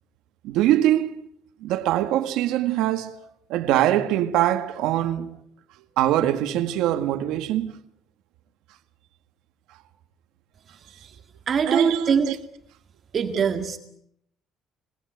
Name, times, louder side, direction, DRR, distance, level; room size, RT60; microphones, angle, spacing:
voice 1, 0.4-1.2 1.6-3.2 3.5-5.4 6.0-7.8 11.7-12.4, right 13 dB, 85° right, 1.7 m, -23 dB
voice 2, 11.5-12.3 13.1-13.8, right 6 dB, 35° right, 1.8 m, -22 dB
26.5 x 19.0 x 9.2 m
cardioid pair, 165°, 0 cm